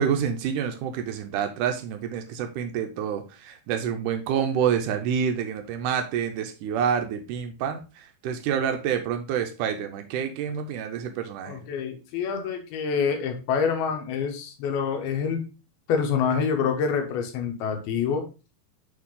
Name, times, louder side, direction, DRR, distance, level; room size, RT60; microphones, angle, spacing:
voice 1, 0.0-11.6, right 8 dB, 85° right, 5 dB, 1.8 m, -28 dB
voice 2, 11.5-15.4 15.9-18.2, left 6 dB, 85° left, 4 dB, 2.9 m, -26 dB
8.5 x 3.3 x 3.7 m, 0.31 s
omnidirectional pair, 4.3 m